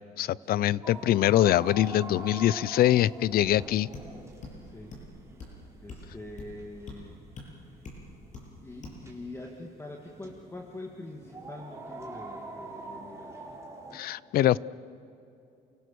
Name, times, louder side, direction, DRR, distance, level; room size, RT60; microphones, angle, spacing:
voice 1, 0.2-3.9 13.9-14.6, left 13 dB, 65° left, 22 dB, 0.5 m, -23 dB
sound 1, 0.8-14.0, right 3 dB, 15° right, 3.9 m, -45 dB
sound 2, 3.9-4.1 4.4-4.6 4.9-5.1 5.4-5.6 5.9-6.1 6.4-6.5 6.9-7.0 7.4-7.5 7.8-8.0 8.3-8.5 8.8-9.0, left 3 dB, 45° left, 7.2 m, -43 dB
voice 2, 4.6-5.0 5.8-7.2 7.6-7.8 8.6-13.5, left 2 dB, 15° left, 2 dB, 1.9 m, -44 dB
29.5 x 17.0 x 6.9 m, 2.7 s
cardioid pair, 110°, 17 cm